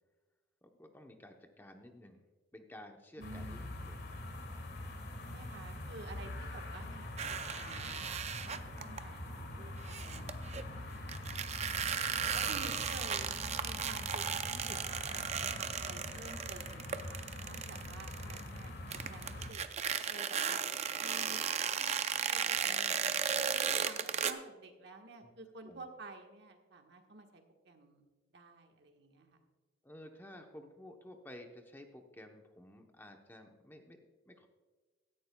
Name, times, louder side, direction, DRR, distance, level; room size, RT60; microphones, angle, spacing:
voice 1, 0.6-2.3 2.5-4.0 11.7-12.6 25.2-25.3 25.6-25.9 29.8-34.5, left 1 dB, 10° left, 4 dB, 0.8 m, -54 dB
sound 1, 3.2-19.5, left 1 dB, 55° left, 1.7 m, -44 dB
voice 2, 3.2-3.8 5.2-7.0 7.3-11.8 12.3-13.3 13.6-14.8 15.1-18.7 19.1-19.6 20.1-20.6 21.0-21.4 21.8-21.9 22.3-28.1 28.3-29.4, right 3 dB, 60° right, 3 dB, 1.4 m, -52 dB
sound 2, 7.2-9.0 9.9-10.6 11.1-18.7 18.9-24.3, right 7 dB, 35° right, 0.5 m, -35 dB
16.5 x 13.5 x 2.3 m, 1.3 s
head